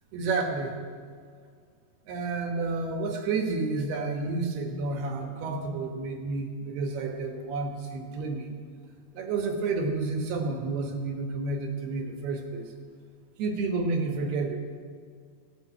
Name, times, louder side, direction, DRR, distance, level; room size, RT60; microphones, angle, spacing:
voice 1, 0.1-0.8 2.1-8.5 9.1-12.7 13.4-14.6, right 3 dB, 70° right, 4 dB, 3.1 m, -30 dB
16.5 x 8.4 x 8.5 m, 2.1 s
omnidirectional pair, 5.0 m